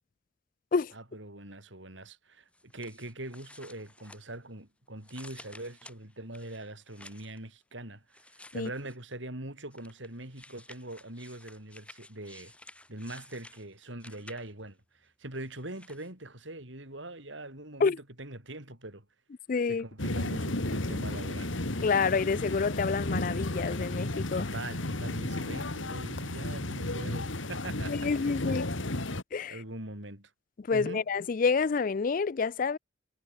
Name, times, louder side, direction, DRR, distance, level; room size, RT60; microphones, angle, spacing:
voice 1, 0.9-8.2 8.5-12.5 12.9-19.1 19.7-21.5 24.4-28.7 29.5-30.3 30.7-31.1, right 1 dB, 70° right, 5.2 m, -43 dB
sound 1, 2.5-4.6 5.0-7.4 8.1-9.1 9.7-14.7 15.3-16.1, left 2 dB, 5° left, 3.1 m, -53 dB
voice 2, 19.5-19.8 21.8-24.5 27.9-28.6 29.3-29.6 30.7-32.8, left 5 dB, 45° left, 0.4 m, -28 dB
sound 2, 20.0-29.2, left 1 dB, 75° left, 2.6 m, -33 dB
head